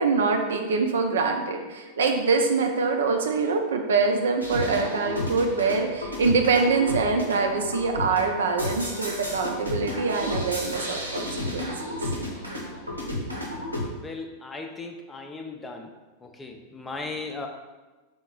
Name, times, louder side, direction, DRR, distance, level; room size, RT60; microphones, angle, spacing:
voice 1, 0.0-12.0, right 4 dB, 65° right, 4 dB, 0.5 m, -24 dB
sound 1, 4.4-13.9, left 1 dB, 85° right, 0.9 m, -32 dB
voice 2, 14.0-15.9 16.2-17.5, left 3 dB, 15° left, 3 dB, 0.5 m, -37 dB
3.8 x 3.6 x 3.8 m, 1.2 s
figure-of-eight pair, 90°, 0 cm